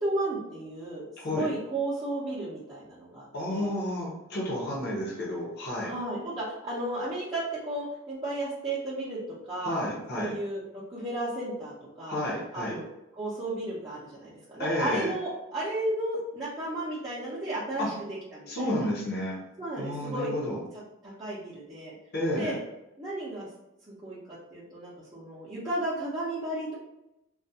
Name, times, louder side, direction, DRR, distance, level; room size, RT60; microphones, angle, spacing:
voice 1, 0.0-1.0 1.3-3.7 5.8-9.8 10.2-12.2 12.5-12.9 13.2-18.9 19.6-20.3 21.0-22.0 22.4-22.6 23.0-23.5 23.9-26.8, right 1 dB, 20° right, -11 dB, 0.5 m, -34 dB
voice 2, 1.2-1.5 3.3-5.9 9.6-10.4 12.1-12.8 14.6-15.1 17.8-17.9 18.5-19.4 19.8-20.6 22.1-22.6, left 1 dB, 50° left, -3 dB, 0.7 m, -31 dB
2.3 x 2.2 x 2.6 m, 0.90 s
head